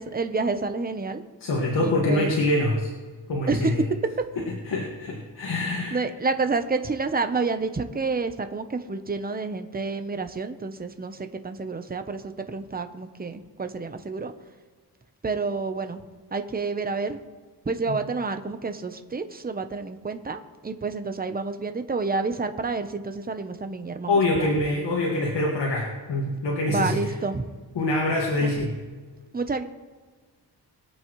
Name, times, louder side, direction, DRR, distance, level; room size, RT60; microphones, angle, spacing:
voice 1, 0.0-1.2 1.8-2.3 3.5-3.7 5.9-14.3 15.2-16.0 16.3-17.2 17.7-24.5 26.7-27.5 28.4-28.5 29.3-29.6, right 4 dB, 20° right, 8 dB, 0.8 m, -29 dB
voice 2, 1.4-2.9 3.3-3.8 4.7-6.0 17.9-18.0 24.1-27.1 27.8-28.7, left 2 dB, 85° left, -1 dB, 1.9 m, -25 dB
22.5 x 8.5 x 3.2 m, 1.4 s
wide cardioid pair, 125°, 41 cm